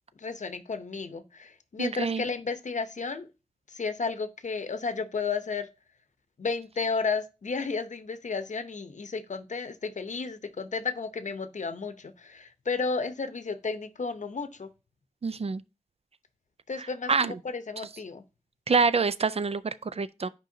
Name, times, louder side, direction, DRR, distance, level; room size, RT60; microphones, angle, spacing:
voice 1, 0.2-3.3 3.7-5.7 6.4-14.7 16.7-18.2, left 4 dB, 80° left, 0.7 m, -33 dB
voice 2, 1.8-2.2 15.2-15.6 16.8-17.4 18.7-20.3, right 4 dB, 55° right, 0.4 m, -26 dB
9.1 x 5.2 x 2.7 m
wide cardioid pair, 75°, 13 cm